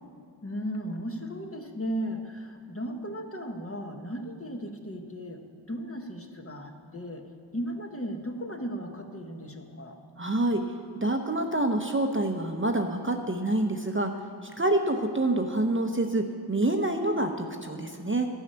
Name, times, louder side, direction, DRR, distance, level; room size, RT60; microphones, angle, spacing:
voice 1, 0.4-5.4 5.7-7.3 7.5-10.0, equal, 30° left, 3 dB, 1.0 m, -36 dB
voice 2, 10.2-10.6 11.0-14.1 14.6-18.3, right 1 dB, 25° right, 4 dB, 0.7 m, -27 dB
12.0 x 5.6 x 8.5 m, 2.4 s
wide cardioid pair, 75°, 47 cm